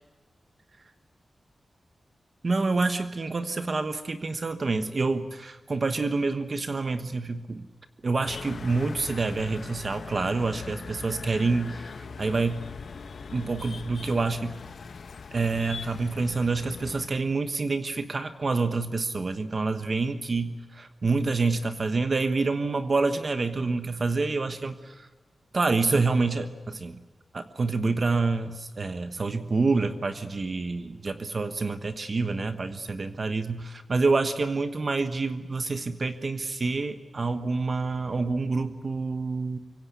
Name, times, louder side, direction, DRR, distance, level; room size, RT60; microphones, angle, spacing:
voice 1, 2.4-7.7 8.0-12.6 13.3-14.6 15.3-25.1 25.5-27.0 27.3-39.6, right 3 dB, 40° right, 9 dB, 1.2 m, -27 dB
sound 1, 8.3-17.1, left 5 dB, 65° left, 1.2 m, -41 dB
25.5 x 24.0 x 8.2 m, 1.3 s
wide cardioid pair, 165°, 0 cm